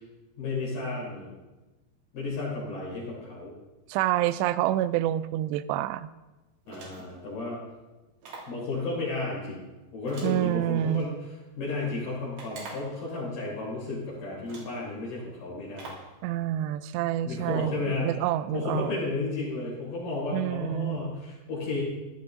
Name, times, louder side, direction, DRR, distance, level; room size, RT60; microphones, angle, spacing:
voice 1, 0.4-1.3 2.1-3.5 6.7-7.6 8.5-9.6 9.9-16.0 17.2-18.1 18.5-21.8, left 3 dB, 60° left, -7 dB, 5.5 m, -33 dB
voice 2, 3.9-6.1 10.2-11.1 16.2-18.9 20.3-21.0, right 13 dB, 85° right, 14 dB, 2.5 m, -27 dB
sound 1, 6.6-7.2 8.2-8.6 10.1-11.1 12.4-13.0 13.9-14.0 14.4-14.8 15.8-16.1, right 3 dB, 65° right, 5.1 m, -45 dB
15.5 x 11.5 x 4.0 m, 1.1 s
omnidirectional pair, 5.3 m